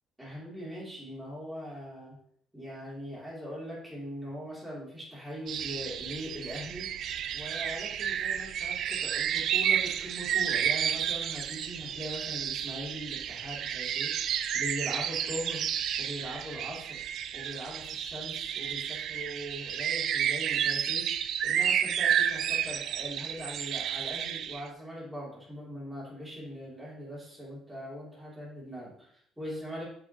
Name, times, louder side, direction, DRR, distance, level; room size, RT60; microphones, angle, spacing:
voice 1, 0.2-2.2 2.5-6.9 7.3-15.7 16.0-17.0 17.3-29.8, equal, 5° right, -7 dB, 3.2 m, -41 dB
sound 1, 5.5-24.7, right 9 dB, 65° right, 0.4 m, -31 dB
7.1 x 6.1 x 3.0 m, 0.66 s
cardioid pair, 115°, 0 cm